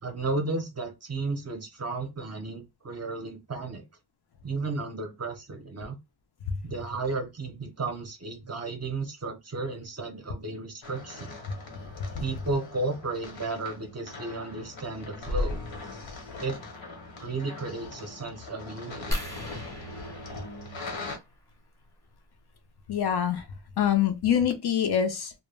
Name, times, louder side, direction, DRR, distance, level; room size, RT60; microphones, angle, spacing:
voice 1, 0.0-3.8 4.4-6.0 6.6-11.3 12.2-15.6 16.4-16.6 17.2-19.2, right 3 dB, 35° right, 0.6 m, -33 dB
sound 1, 10.8-21.2, left 2 dB, 70° left, 1.0 m, -39 dB
sound 2, 19.1-21.5 23.1-23.3 23.8-23.9 24.2-24.4, equal, 5° left, 0.6 m, -37 dB
voice 2, 22.9-23.4 23.8-25.3, left 9 dB, 55° left, 0.5 m, -25 dB
2.2 x 2.1 x 3.2 m
wide cardioid pair, 135°, 47 cm